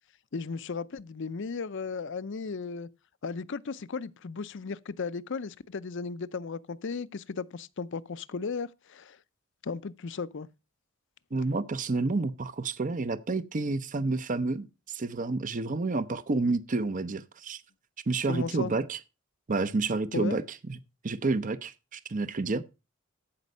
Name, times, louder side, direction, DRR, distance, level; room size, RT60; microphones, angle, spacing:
voice 1, 0.3-2.9 3.2-9.2 9.6-10.5 18.3-18.7 20.1-20.4, left 4 dB, 60° left, 0.6 m, -35 dB
voice 2, 11.3-17.6 18.1-19.0 19.5-20.8 21.0-22.6, right 3 dB, 40° right, 0.6 m, -29 dB
14.5 x 5.3 x 5.3 m
head